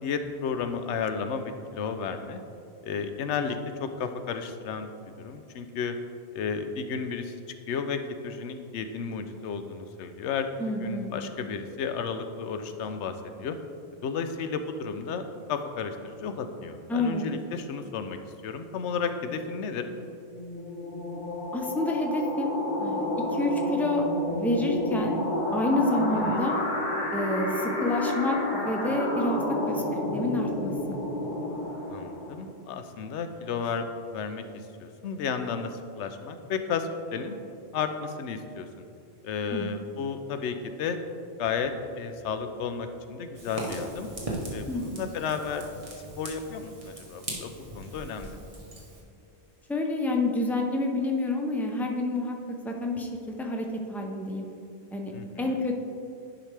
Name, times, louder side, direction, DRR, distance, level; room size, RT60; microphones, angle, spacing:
voice 1, 0.0-2.4 2.8-4.9 5.2-6.0 6.3-7.4 7.7-13.6 14.0-18.2 18.4-19.8 26.2-26.5 31.9-37.4 37.7-38.8 39.2-41.0 41.4-44.1 44.5-45.6 46.0-48.4 55.1-55.6, left 5 dB, 90° left, 8 dB, 0.9 m, -33 dB
voice 2, 10.6-11.1 16.9-17.3 21.5-25.2 25.5-26.6 27.1-29.8 30.1-31.0 39.5-39.7 44.7-45.1 49.7-52.4 52.6-54.4 54.9-55.1 55.4-55.8, left 1 dB, ahead, 1 dB, 0.4 m, -28 dB
sound 1, 19.9-32.5, left 1 dB, 45° left, 1.2 m, -30 dB
Fire, 43.3-49.0, right 1 dB, 30° right, 1.2 m, -39 dB
10.5 x 4.9 x 3.3 m, 2.6 s
omnidirectional pair, 1.1 m